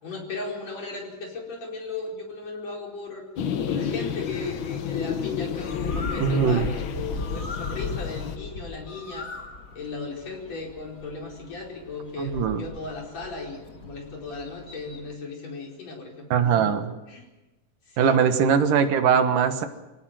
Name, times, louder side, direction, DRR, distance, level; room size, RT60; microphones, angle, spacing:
voice 1, 0.0-3.3 3.7-9.3 9.7-16.7 17.1-17.3 17.9-18.2, left 3 dB, 55° left, 0 dB, 5.9 m, -36 dB
sound 1, 3.4-8.4, left 8 dB, 85° left, 1.0 m, -31 dB
Bird, 5.6-15.1, left 3 dB, 30° left, 2.0 m, -37 dB
voice 2, 6.2-6.7 12.2-12.6 16.3-16.9 18.0-19.7, right 7 dB, 80° right, 8 dB, 3.1 m, -21 dB
26.5 x 18.0 x 7.7 m, 1.0 s
omnidirectional pair, 3.7 m